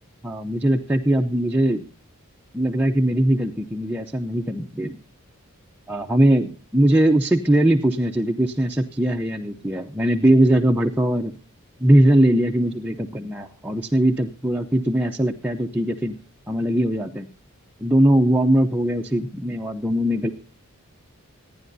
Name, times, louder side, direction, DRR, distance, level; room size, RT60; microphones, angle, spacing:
voice 1, 0.2-1.8 2.5-5.0 5.9-11.3 11.8-16.1 16.5-17.3 17.8-20.3, right 1 dB, 5° right, 2 dB, 0.7 m, -20 dB
26.5 x 10.0 x 2.7 m, 0.34 s
head